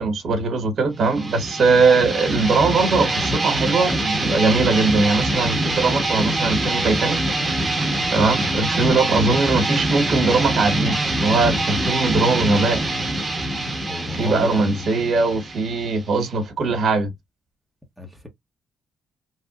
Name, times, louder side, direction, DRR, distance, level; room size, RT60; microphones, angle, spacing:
voice 1, 0.0-7.2 8.1-12.8 14.1-17.1, right 3 dB, 60° right, 1.4 m, -20 dB
sound 1, 1.0-16.4, right 2 dB, 20° right, 1.1 m, -24 dB
voice 2, 13.9-14.7 18.0-18.3, left 2 dB, ahead, 1.1 m, -31 dB
3.4 x 2.4 x 2.4 m
cardioid pair, 90°, 0 cm